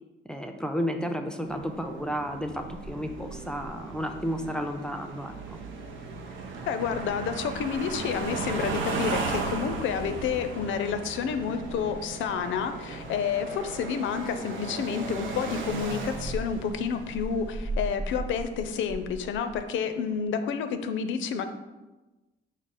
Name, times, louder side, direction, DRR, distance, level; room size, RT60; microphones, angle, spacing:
voice 1, 0.3-5.6, equal, 5° left, 5 dB, 0.4 m, -32 dB
sound 1, 1.5-19.6, right 3 dB, 75° right, 0.6 m, -36 dB
voice 2, 6.7-21.4, left 7 dB, 75° left, 9 dB, 0.4 m, -30 dB
4.8 x 2.0 x 4.1 m, 1.1 s
cardioid pair, 90°, 20 cm